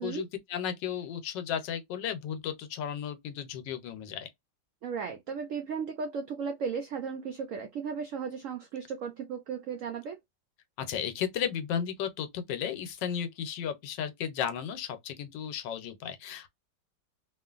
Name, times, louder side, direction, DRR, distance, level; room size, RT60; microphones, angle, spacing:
voice 1, 0.0-4.3 10.8-16.5, left 8 dB, 80° left, 1.3 m, -34 dB
voice 2, 4.8-10.2, right 6 dB, 80° right, 0.7 m, -35 dB
2.9 x 2.4 x 2.3 m
omnidirectional pair, 1.9 m